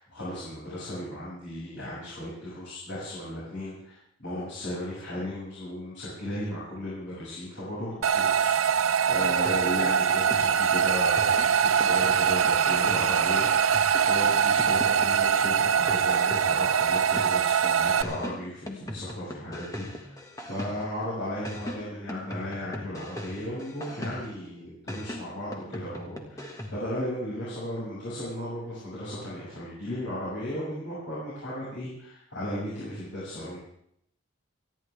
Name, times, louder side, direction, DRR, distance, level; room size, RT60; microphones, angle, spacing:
voice 1, 0.0-8.5 9.1-13.5 14.1-20.1 20.5-33.6, left 1 dB, 60° left, -9 dB, 7.1 m, -36 dB
sound 1, 8.0-18.0, right 7 dB, 85° right, 0.6 m, -23 dB
sound 2, 9.1-10.7 11.2-17.6 18.0-21.0 21.4-24.5 24.9-26.9, left 1 dB, 15° left, 1.7 m, -40 dB
29.0 x 11.0 x 3.6 m, 0.71 s
head